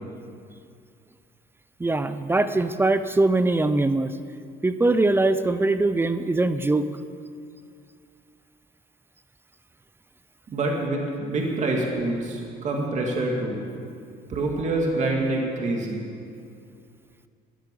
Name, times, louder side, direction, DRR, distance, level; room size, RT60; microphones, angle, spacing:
voice 1, 1.8-4.1 4.6-6.9, right 2 dB, 15° right, 11 dB, 0.6 m, -22 dB
voice 2, 10.5-13.6 14.3-16.0, right 2 dB, 45° right, 0 dB, 2.4 m, -26 dB
14.0 x 10.5 x 6.8 m, 2.3 s
cardioid pair, 110°, 17 cm